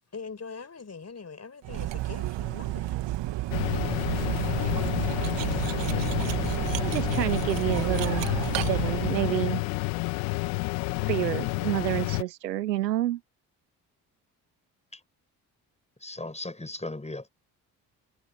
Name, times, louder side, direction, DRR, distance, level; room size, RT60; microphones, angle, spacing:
voice 1, 0.1-3.0, left 5 dB, 30° left, 6.4 m, -42 dB
Cutlery silverware, 1.6-9.4, right 15 dB, 60° right, 2.2 m, -31 dB
sound 1, 3.5-12.2, left 27 dB, 75° left, 1.7 m, -29 dB
voice 2, 6.8-9.6 11.1-13.2, right 14 dB, 85° right, 1.7 m, -29 dB
voice 3, 16.0-17.3, left 2 dB, 15° left, 6.5 m, -37 dB
hypercardioid pair, 50°, 49 cm